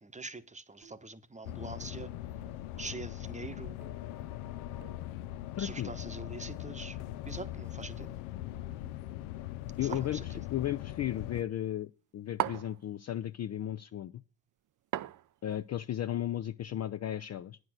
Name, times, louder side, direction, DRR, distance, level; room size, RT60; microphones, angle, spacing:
voice 1, 0.0-2.1 2.8-3.8 5.6-7.0 7.3-8.1 9.8-10.3, right 3 dB, 15° right, 0.9 m, -44 dB
sound 1, 0.8-1.2 1.8-2.2 2.8-3.1 3.8-4.1 4.8-5.1 5.8-6.1 6.8-7.1 7.8-8.1, right 8 dB, 65° right, 1.5 m, -58 dB
sound 2, 1.4-11.4, left 13 dB, 85° left, 0.6 m, -41 dB
voice 2, 5.6-5.9 9.8-14.2 15.4-17.6, left 12 dB, 35° left, 0.4 m, -35 dB
sound 3, 9.9-10.3 12.4-12.8 14.9-15.5, right 12 dB, 40° right, 0.5 m, -35 dB
9.4 x 6.2 x 6.3 m
supercardioid pair, 65°, 47 cm